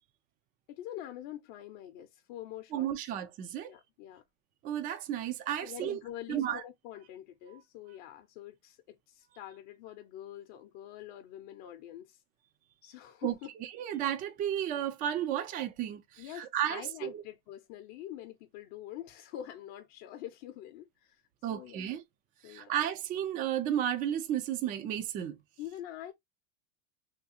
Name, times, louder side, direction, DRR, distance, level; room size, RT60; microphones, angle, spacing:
voice 1, 0.7-2.9 3.7-4.2 5.6-12.2 12.8-13.5 16.2-21.2 21.5-21.8 22.4-22.7 25.6-26.1, left 12 dB, 45° left, 0.7 m, -45 dB
voice 2, 2.7-3.7 4.6-6.0 6.3-6.6 13.2-13.3 13.8-17.2 21.4-22.0 22.4-25.4, right 10 dB, 20° right, 0.4 m, -33 dB
3.6 x 2.3 x 2.7 m
supercardioid pair, 145°, 41 cm